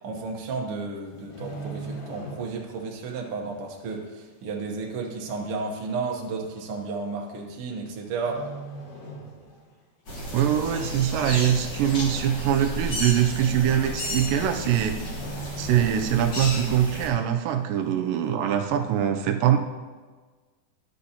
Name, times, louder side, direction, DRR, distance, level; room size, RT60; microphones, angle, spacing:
voice 1, 0.0-8.4, right 4 dB, 65° right, 0 dB, 1.5 m, -32 dB
sound 1, 1.1-2.8 3.1-3.3 3.9-4.0 4.9-5.0 5.2-5.3 6.1-6.4 7.5-7.9 8.2-9.7 10.1-10.3 10.8-11.3 11.6-11.7 12.0-12.1 12.5-12.6 13.6-13.7 13.9-14.2 14.5-14.6 15.0-16.7 17.0-17.1, right 2 dB, 70° left, 3.5 m, -40 dB
sound 2, 10.1-17.1, equal, 40° left, 1.8 m, -33 dB
voice 2, 10.3-15.0 15.6-19.6, right 10 dB, 85° right, 5 dB, 2.2 m, -23 dB
11.5 x 6.8 x 2.8 m, 1.4 s
omnidirectional pair, 3.8 m